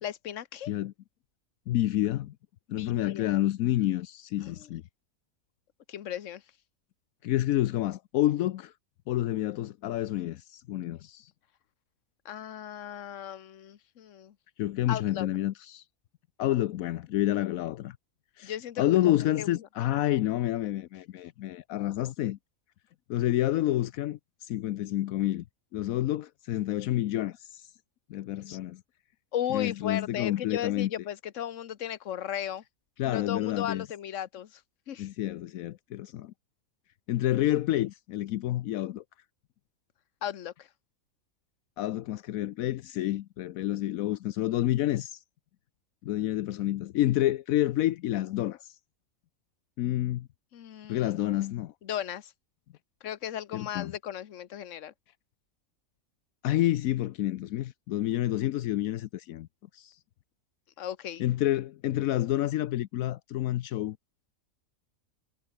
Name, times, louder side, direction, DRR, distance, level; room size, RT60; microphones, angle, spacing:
voice 1, 0.0-0.7 2.7-3.4 4.4-4.7 5.9-6.4 12.2-14.3 14.9-15.3 18.4-19.5 28.5-28.6 29.3-32.6 33.0-34.6 34.9-35.1 40.2-40.7 50.5-51.4 51.8-52.3 53.0-54.9 60.8-61.3, left 10 dB, 65° left, 1.3 m, -36 dB
voice 2, 1.7-2.3 2.7-4.8 7.2-8.7 9.1-11.3 14.6-15.8 16.4-18.0 18.4-22.4 23.1-25.4 25.7-27.7 28.1-28.8 29.5-30.9 33.0-33.8 35.0-36.3 37.1-39.0 41.8-45.2 46.0-48.8 49.8-50.3 50.9-51.7 53.5-53.9 56.4-59.5 59.7-60.0 61.2-64.0, left 14 dB, 80° left, 1.1 m, -29 dB
omnidirectional pair, 1.5 m